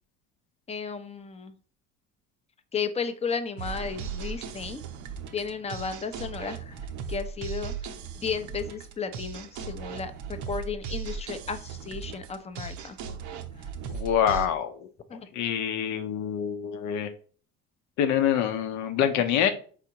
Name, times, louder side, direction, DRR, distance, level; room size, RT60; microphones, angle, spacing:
voice 1, 0.7-1.5 2.7-4.8 5.3-6.8 7.1-7.7 8.2-13.0 15.1-15.3, left 5 dB, 20° left, 9 dB, 0.7 m, -34 dB
sound 1, 3.6-14.5, right 6 dB, 65° right, 0.7 m, -37 dB
voice 2, 13.9-14.9 15.3-17.1 18.0-19.5, left 9 dB, 65° left, 8 dB, 0.8 m, -26 dB
5.0 x 3.7 x 2.9 m, 0.43 s
hypercardioid pair, 70°, 32 cm